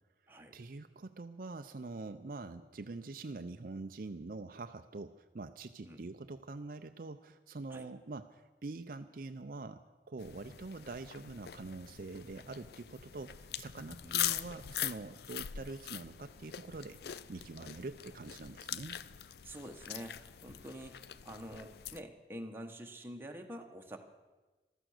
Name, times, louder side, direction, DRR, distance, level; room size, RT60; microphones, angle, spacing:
voice 1, 0.5-9.8 10.1-17.0 17.3-19.0, right 3 dB, 50° right, 8 dB, 0.5 m, -45 dB
sound 1, 10.2-22.0, left 11 dB, 60° left, 0.5 m, -42 dB
voice 2, 19.4-24.0, equal, 10° right, 3 dB, 1.2 m, -47 dB
15.0 x 13.0 x 6.5 m, 1.2 s
head